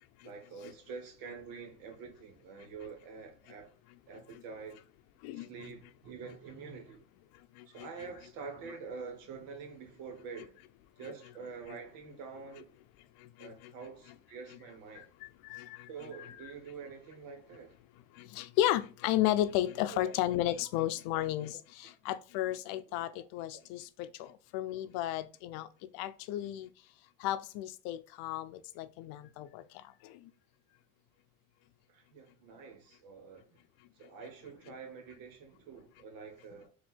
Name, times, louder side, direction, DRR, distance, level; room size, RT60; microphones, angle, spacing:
voice 1, 0.2-3.7 4.1-4.8 5.3-7.0 7.7-10.6 11.0-12.7 13.4-15.1 15.9-17.8 19.9-20.1 31.9-33.6 34.0-36.7, right 5 dB, 80° right, 1.5 m, -46 dB
voice 2, 7.5-7.9 13.2-13.7 14.9-15.9 16.2-16.5 18.1-26.7 27.2-30.3, left 13 dB, 85° left, 0.6 m, -34 dB
4.5 x 2.8 x 4.2 m
cardioid pair, 115°, 33 cm